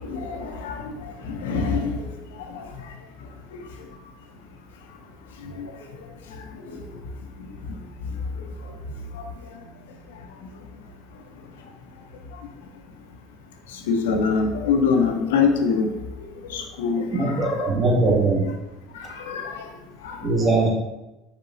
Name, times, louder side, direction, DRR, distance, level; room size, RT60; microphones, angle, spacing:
voice 1, 0.0-2.1 2.5-2.7 5.6-5.7 6.7-6.8 9.1-9.3 13.7-15.9 16.5-17.7 18.1-18.2 19.0-19.6 20.0-20.6, left 5 dB, 85° left, 4 dB, 0.6 m, -25 dB
voice 2, 17.1-18.5 20.2-20.7, right 3 dB, 30° right, -2 dB, 1.4 m, -20 dB
5.0 x 3.6 x 2.6 m, 1.0 s
hypercardioid pair, 85°, 0 cm